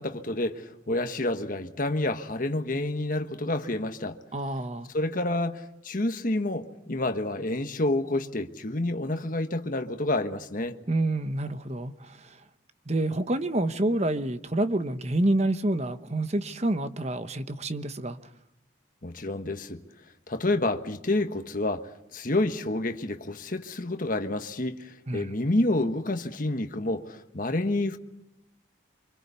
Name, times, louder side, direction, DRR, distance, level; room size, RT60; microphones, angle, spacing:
voice 1, 0.0-4.2 4.9-10.8 19.0-19.8 20.3-28.0, left 2 dB, 45° left, 1.4 m, -29 dB
voice 2, 4.3-4.9 10.9-12.4 12.9-18.2 25.1-25.3, right 1 dB, 35° right, 1.1 m, -28 dB
25.5 x 25.0 x 6.9 m
head